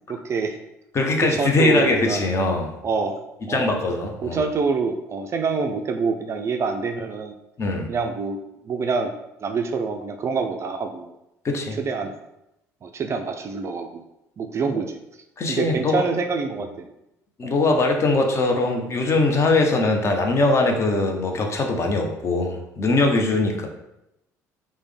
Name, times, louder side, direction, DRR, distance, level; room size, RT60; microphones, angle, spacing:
voice 1, 0.1-0.6 1.4-2.3 2.8-3.2 3.5-3.7 4.2-7.3 7.9-8.4 8.7-9.1 9.4-11.1 11.8-12.1 12.8-14.0 14.4-15.0 15.5-16.9 17.4-17.6, right 4 dB, 35° right, 5 dB, 0.3 m, -26 dB
voice 2, 0.9-2.7 3.5-4.4 7.6-7.9 11.4-11.8 15.4-16.0 17.4-23.7, left 2 dB, 35° left, 3 dB, 0.6 m, -21 dB
3.2 x 2.1 x 3.2 m, 0.87 s
figure-of-eight pair, 55°, 9 cm